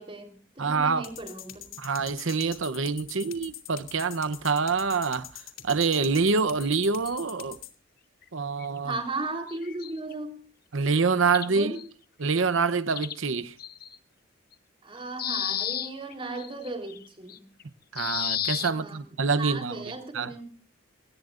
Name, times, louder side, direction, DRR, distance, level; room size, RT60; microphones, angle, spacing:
voice 1, 0.0-1.7 8.8-10.4 11.5-11.8 14.8-17.4 18.6-19.0 19.4-20.5, right 2 dB, 25° right, 4.1 m, -36 dB
voice 2, 0.6-1.1 1.8-5.3 5.6-7.6 8.3-9.0 10.7-11.7 12.2-13.5 17.9-20.3, right 4 dB, 75° right, 0.9 m, -26 dB
sound 1, 1.0-7.7, left 12 dB, 80° left, 2.7 m, -43 dB
sound 2, 6.6-7.1 8.2-8.3 8.6-8.8 9.5-10.1 11.3-11.8 12.9-13.2 13.6-14.0 14.5-14.6 15.2-17.6 18.0-18.7, left 10 dB, 45° left, 0.8 m, -33 dB
23.5 x 19.5 x 2.6 m
head